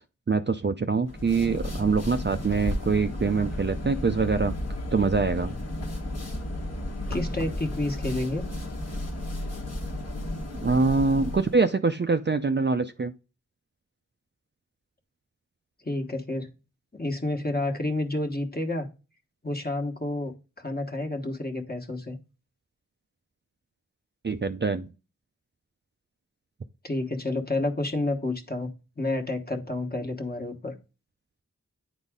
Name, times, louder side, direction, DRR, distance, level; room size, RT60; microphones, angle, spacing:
voice 1, 0.3-4.6 4.9-5.5 10.6-13.1 24.2-24.9, right 4 dB, 35° right, 8 dB, 0.4 m, -24 dB
sound 1, 1.0-11.6, left 1 dB, 50° left, 1.3 m, -33 dB
voice 2, 7.1-8.5 15.8-16.5 16.9-18.9 19.4-22.2 26.8-28.7 29.0-30.7, left 2 dB, 30° left, 3 dB, 1.2 m, -30 dB
9.8 x 4.1 x 3.6 m, 0.32 s
wide cardioid pair, 50°, 33 cm